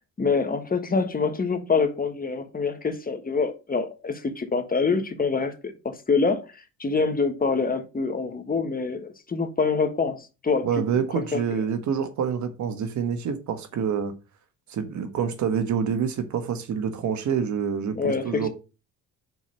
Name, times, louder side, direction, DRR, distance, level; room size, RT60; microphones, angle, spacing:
voice 1, 0.2-5.5 5.8-10.7 11.3-11.4 17.9-18.5, left 4 dB, 25° left, 1.3 m, -25 dB
voice 2, 10.6-14.1 14.7-18.5, right 7 dB, 60° right, 1.4 m, -27 dB
5.5 x 4.5 x 5.4 m
supercardioid pair, 70°, 33 cm